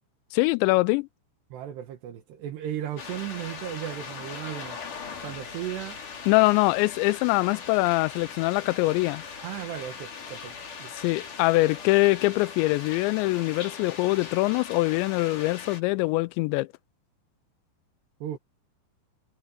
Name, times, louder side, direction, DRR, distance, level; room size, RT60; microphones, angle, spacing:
voice 1, 0.3-1.1 6.3-9.2 11.0-16.7, left 22 dB, 85° left, 2.7 m, -23 dB
voice 2, 1.5-4.8 5.2-6.0 9.4-10.9 18.2-18.4, right 11 dB, 70° right, 3.2 m, -36 dB
sound 1, 3.0-15.8, left 6 dB, 45° left, 4.6 m, -40 dB
omnidirectional pair, 5.4 m